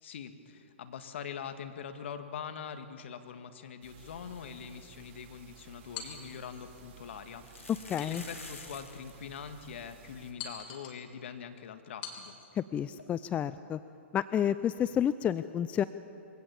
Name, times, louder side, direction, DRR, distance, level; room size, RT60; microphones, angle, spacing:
voice 1, 0.0-7.7 8.0-12.4, left 7 dB, 60° left, 8 dB, 1.9 m, -43 dB
sound 1, 3.8-10.3, right 8 dB, 45° right, 3.1 m, -55 dB
sound 2, 5.7-5.8 6.1-6.2 7.3-9.1 9.4-9.5 9.7-9.9 10.5-10.6 10.9-11.0 13.0-13.1, left 3 dB, 90° left, 2.7 m, -48 dB
sound 3, 5.9-6.7 8.0-8.8 9.3-9.4 10.4-11.0 12.0-12.5, left 7 dB, 45° left, 3.4 m, -45 dB
voice 2, 7.9-8.2 12.5-13.8 14.1-15.8, left 9 dB, 20° left, 14 dB, 0.4 m, -30 dB
23.0 x 17.0 x 7.2 m, 2.6 s
hypercardioid pair, 120°, 7 cm